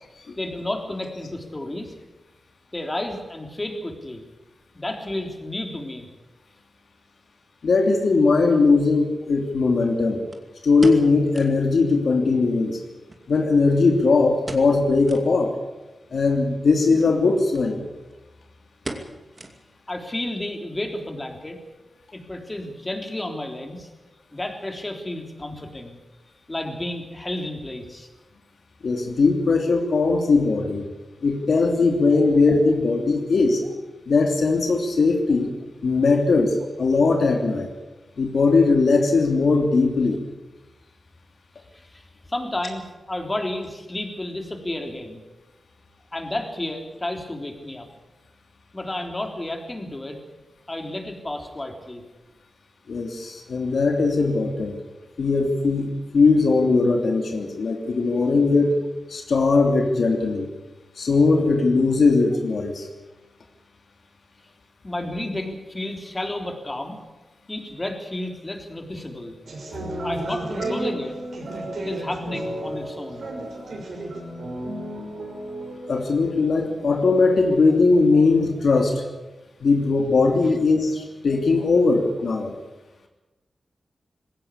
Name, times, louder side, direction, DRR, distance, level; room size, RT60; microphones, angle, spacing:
voice 1, 0.4-1.9 2.7-4.2 4.7-6.1 19.9-21.6 22.1-23.9 24.3-26.0 26.5-28.1 41.7-42.0 42.3-45.2 46.1-47.9 48.7-50.2 50.7-52.0 64.8-67.0 67.5-69.3 70.0-71.2 71.8-73.3, left 1 dB, 25° left, 4 dB, 3.6 m, -31 dB
voice 2, 7.6-10.2 10.6-12.8 13.3-15.5 16.1-17.8 28.8-30.8 31.2-33.6 34.1-35.5 35.8-37.7 38.2-40.2 52.9-54.8 55.2-58.8 59.1-60.5 61.0-62.9 75.9-79.0 79.6-82.5, left 3 dB, 80° left, 3 dB, 2.9 m, -19 dB
sound 1, 8.2-8.3 10.3-11.7 12.0-12.1 12.4-12.5 13.1-14.0 14.4-14.8 15.0-15.3 15.8-15.9 16.9-17.1 17.5-17.7 17.9-18.3 18.8-19.9 20.2-20.3 20.9-21.2 21.5-21.6, right 2 dB, 35° right, 2.5 m, -37 dB
sound 2, 69.4-77.5, right 1 dB, 80° right, 5.9 m, -33 dB
20.5 x 17.5 x 8.5 m, 1.1 s
wide cardioid pair, 100°, 0 cm